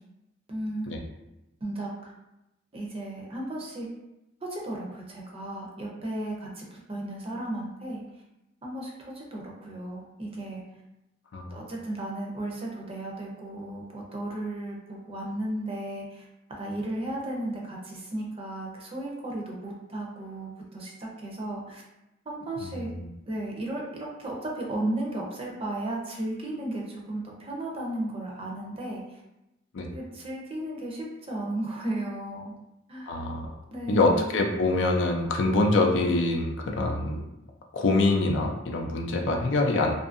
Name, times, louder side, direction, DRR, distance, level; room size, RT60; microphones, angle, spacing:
voice 1, 0.5-0.9 1.6-2.1 2.7-3.9 4.4-8.0 8.6-10.6 11.5-16.3 16.6-21.8 22.3-22.9 23.3-29.2 29.9-32.6 32.9-33.2 33.7-34.3, right 1 dB, 30° right, -2 dB, 0.5 m, -34 dB
voice 2, 11.3-11.7 22.6-23.1 29.7-29.9 33.1-33.6 33.9-37.2 37.7-39.9, left 2 dB, 65° left, 2 dB, 0.4 m, -25 dB
2.6 x 2.4 x 2.5 m, 0.93 s
head